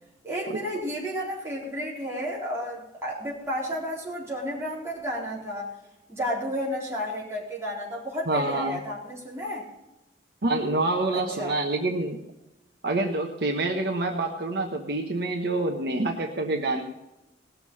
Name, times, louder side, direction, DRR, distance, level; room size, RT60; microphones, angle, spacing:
voice 1, 0.2-5.7 6.1-9.6 11.1-11.6, equal, 15° right, -5 dB, 4.1 m, -32 dB
voice 2, 8.3-8.8 10.4-12.2 12.8-16.8, right 2 dB, 60° right, 3 dB, 1.1 m, -27 dB
18.5 x 7.0 x 5.6 m, 0.96 s
head